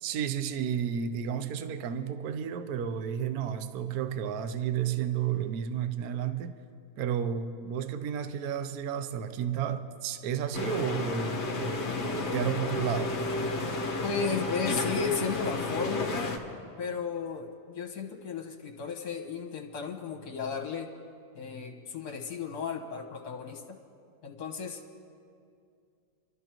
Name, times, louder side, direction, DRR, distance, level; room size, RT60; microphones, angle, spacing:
voice 1, 0.0-6.6 7.0-13.2, right 8 dB, 65° right, 10 dB, 1.0 m, -32 dB
sound 1, 10.5-16.4, left 3 dB, 40° left, 1.3 m, -32 dB
voice 2, 14.0-16.3 16.8-20.9 21.4-23.8 24.2-24.8, left 5 dB, 60° left, 3 dB, 1.9 m, -34 dB
30.0 x 12.5 x 3.0 m, 2.4 s
omnidirectional pair, 2.0 m